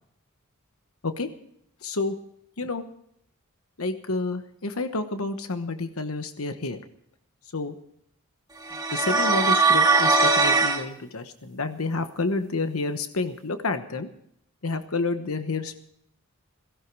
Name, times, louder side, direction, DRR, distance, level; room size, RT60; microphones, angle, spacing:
voice 1, 1.8-2.2 2.6-2.8 3.8-6.8 7.5-7.8 8.9-14.1 14.6-15.8, left 3 dB, 70° left, 8 dB, 1.2 m, -29 dB
sound 1, 8.7-10.8, right 3 dB, 20° right, 1.9 m, -20 dB
17.0 x 16.0 x 4.7 m, 0.71 s
head